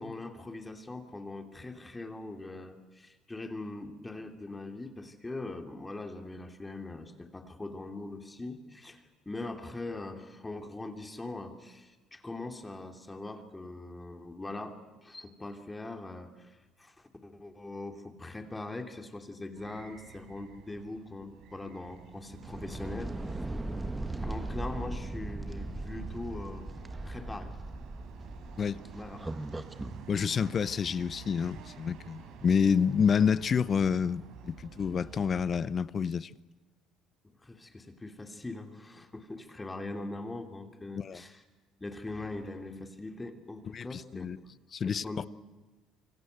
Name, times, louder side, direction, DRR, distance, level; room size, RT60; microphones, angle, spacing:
voice 1, 0.0-23.5 24.2-26.7 27.0-27.6 28.9-29.3 37.4-41.4 41.8-44.3 44.8-45.3, left 2 dB, 15° left, 2.9 m, -41 dB
sound 1, 19.5-35.7, right 7 dB, 70° right, 4.0 m, -50 dB
sound 2, 22.4-30.0, right 2 dB, 15° right, 1.6 m, -38 dB
voice 2, 30.1-36.3 40.9-41.2 43.7-44.4 44.7-45.2, left 6 dB, 40° left, 0.8 m, -28 dB
26.0 x 24.5 x 8.1 m
supercardioid pair, 85°, 0 cm